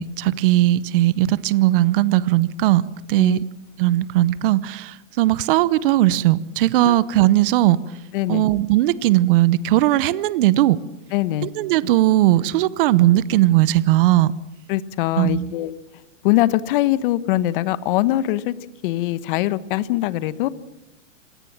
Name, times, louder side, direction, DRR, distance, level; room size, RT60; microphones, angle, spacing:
voice 1, 0.0-2.8 3.1-3.4 3.8-7.8 8.3-10.8 11.4-14.3 15.2-15.5, right 15 dB, 45° right, 18 dB, 0.9 m, -18 dB
voice 2, 8.1-8.4 11.1-11.5 14.7-15.7 16.2-18.5 18.8-20.5, left 15 dB, 45° left, 16 dB, 1.1 m, -22 dB
26.5 x 17.5 x 7.4 m, 0.93 s
hypercardioid pair, 145°, 38 cm